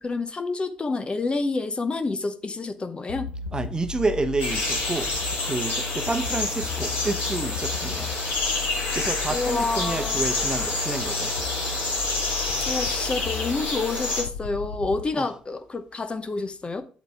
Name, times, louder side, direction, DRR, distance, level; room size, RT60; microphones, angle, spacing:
voice 1, 0.0-3.3 9.3-10.2 12.3-16.8, left 3 dB, 30° left, 0.9 m, -28 dB
sound 1, 3.1-15.0, left 6 dB, 80° left, 0.5 m, -35 dB
voice 2, 3.5-5.1 5.5-8.1 8.9-11.3 15.1-15.3, right 3 dB, 25° right, 1.0 m, -29 dB
sound 2, 4.4-14.2, left 2 dB, 60° left, 3.4 m, -28 dB
7.7 x 7.2 x 3.5 m
figure-of-eight pair, 45°, 3 cm